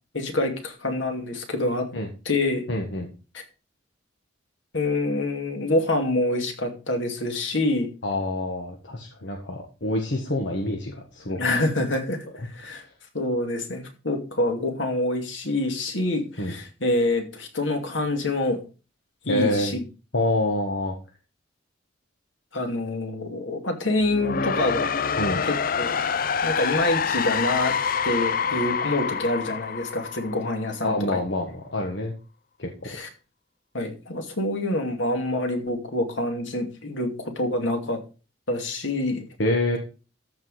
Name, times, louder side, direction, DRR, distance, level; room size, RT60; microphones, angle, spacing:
voice 1, 0.1-1.9 2.2-2.6 3.3-3.4 4.7-7.9 11.4-12.8 13.1-18.6 19.2-19.8 22.5-24.9 25.4-26.0 26.4-27.7 28.0-31.2 32.8-33.1 33.7-38.0 38.5-39.2, left 2 dB, 85° left, 3 dB, 2.4 m, -26 dB
voice 2, 2.7-3.1 8.0-11.5 16.4-16.6 19.3-19.8 20.1-20.9 25.2-25.4 30.8-32.1 32.6-32.7 39.4-39.8, left 1 dB, 70° left, 1 dB, 1.6 m, -26 dB
sound 1, 24.0-30.9, left 6 dB, 50° left, 0.5 m, -26 dB
14.0 x 4.9 x 4.8 m, 0.34 s
head